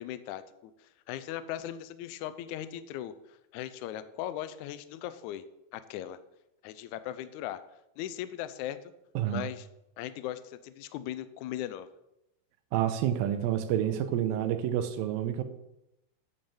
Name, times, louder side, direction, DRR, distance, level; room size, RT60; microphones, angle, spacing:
voice 1, 0.0-5.4 5.7-6.2 6.6-7.6 8.0-8.9 9.3-9.7 10.0-11.9, left 12 dB, 85° left, 12 dB, 1.7 m, -38 dB
voice 2, 9.2-9.5 12.7-15.4, right 11 dB, 85° right, 9 dB, 2.5 m, -29 dB
8.9 x 5.4 x 7.1 m, 0.87 s
omnidirectional pair, 4.0 m